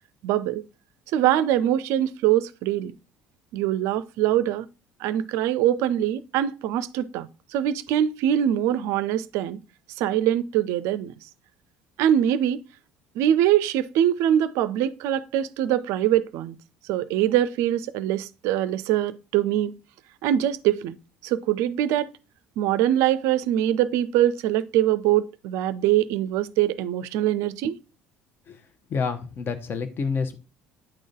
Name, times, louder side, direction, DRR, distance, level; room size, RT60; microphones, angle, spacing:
voice 1, 0.2-0.6 1.1-2.9 3.5-4.7 5.0-9.6 10.0-11.1 12.0-12.6 13.2-16.6 16.9-19.7 20.2-21.0 21.2-22.1 22.6-27.8, right 11 dB, 60° right, 0.4 m, -23 dB
voice 2, 28.9-30.3, left 5 dB, 40° left, 0.9 m, -28 dB
8.8 x 3.8 x 3.6 m
figure-of-eight pair, 55°, 6 cm